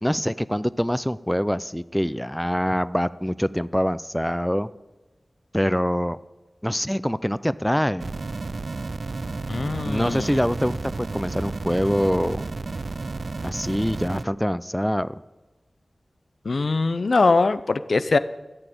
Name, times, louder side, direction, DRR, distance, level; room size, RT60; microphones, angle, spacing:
voice 1, 0.0-4.7 5.5-6.2 6.6-8.1 9.8-12.4 13.4-15.2, equal, 5° left, 16 dB, 0.4 m, -24 dB
sound 1, 8.0-14.2, right 3 dB, 65° right, 0.4 m, -32 dB
voice 2, 9.5-10.3 16.5-18.2, left 3 dB, 75° left, 13 dB, 0.5 m, -22 dB
12.0 x 6.8 x 9.1 m, 1.2 s
wide cardioid pair, 55°, 0 cm